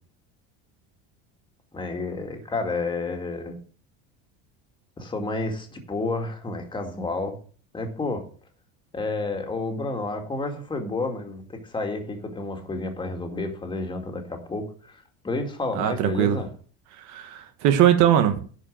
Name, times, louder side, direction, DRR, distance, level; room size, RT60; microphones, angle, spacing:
voice 1, 1.7-3.6 5.0-7.4 7.7-8.2 8.9-16.5, left 3 dB, 15° left, 4 dB, 2.2 m, -30 dB
voice 2, 15.7-16.4 17.0-18.4, right 10 dB, 65° right, 8 dB, 1.4 m, -20 dB
10.5 x 5.2 x 7.4 m, 0.43 s
supercardioid pair, 130°, 31 cm